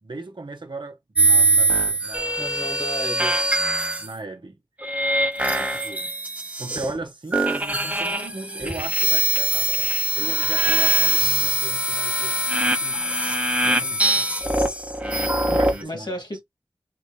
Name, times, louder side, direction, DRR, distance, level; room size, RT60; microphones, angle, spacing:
voice 1, 0.0-2.8 4.0-4.6 5.4-6.1 6.6-12.4 12.6-14.4 15.5-16.2, right 3 dB, 70° right, 1.0 m, -38 dB
sound 1, 1.2-4.1 4.8-7.0 7.3-15.8, right 2 dB, 15° right, 1.0 m, -22 dB
voice 2, 2.4-3.3 13.6-13.9 15.5-16.4, left 1 dB, 60° left, 1.2 m, -34 dB
4.0 x 3.4 x 2.3 m
wide cardioid pair, 45°, 8 cm